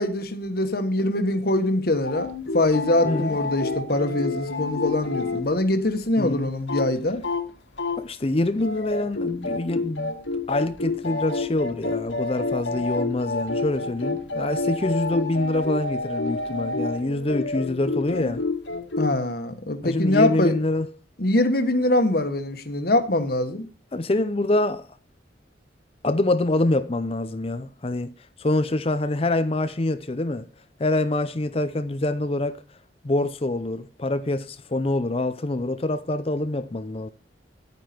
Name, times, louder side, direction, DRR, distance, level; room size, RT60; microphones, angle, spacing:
voice 1, 0.0-7.2 19.0-20.5 21.2-23.6, left 1 dB, 55° left, 1.5 m, -23 dB
sound 1, 2.0-5.4 5.7-5.8 6.0-6.1 6.4-6.9 7.2-7.5 7.8-8.2 8.6-19.1, left 3 dB, 75° left, 2.0 m, -29 dB
voice 2, 3.0-3.4 6.2-6.5 8.0-10.1 10.5-18.4 19.8-20.9 23.9-24.9 26.0-28.1 28.4-30.5 30.8-32.6 33.0-37.1, left 2 dB, 30° left, 0.6 m, -25 dB
11.0 x 9.4 x 4.4 m
head